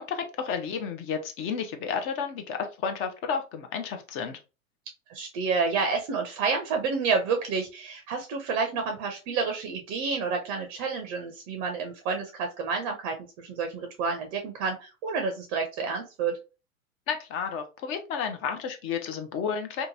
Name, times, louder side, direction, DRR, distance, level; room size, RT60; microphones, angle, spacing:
voice 1, 0.0-4.4 17.1-19.9, left 6 dB, 30° left, 7 dB, 0.6 m, -32 dB
voice 2, 5.1-16.4, right 5 dB, 35° right, 4 dB, 0.6 m, -29 dB
2.8 x 2.3 x 2.6 m, 0.30 s
hypercardioid pair, 105°, 42 cm